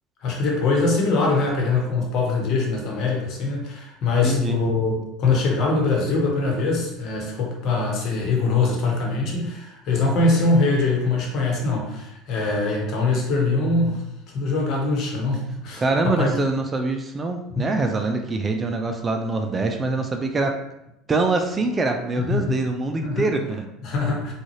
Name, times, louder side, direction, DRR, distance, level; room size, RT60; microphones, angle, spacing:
voice 1, 0.2-4.9 5.2-14.0 14.3-16.3 17.5-17.7 22.2-22.5 23.0-23.3 23.8-24.3, left 3 dB, 55° left, -1 dB, 1.1 m, -23 dB
voice 2, 4.2-4.6 15.8-20.6 21.1-23.7, right 3 dB, 25° right, 4 dB, 0.4 m, -24 dB
3.8 x 2.4 x 3.2 m, 0.87 s
hypercardioid pair, 80°, 0 cm